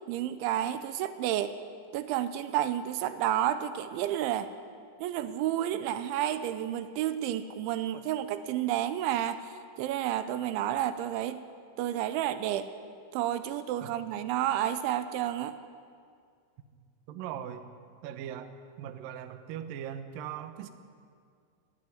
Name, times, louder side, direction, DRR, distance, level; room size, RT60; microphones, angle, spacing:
voice 1, 0.1-1.5 1.9-4.5 5.0-9.4 9.8-11.4 11.8-12.7 13.1-15.5, right 11 dB, 85° right, 11 dB, 3.2 m, -30 dB
voice 2, 17.1-17.6 18.0-18.5 18.8-20.7, right 9 dB, 70° right, 8 dB, 2.2 m, -39 dB
21.5 x 15.5 x 9.5 m, 2.2 s
omnidirectional pair, 5.4 m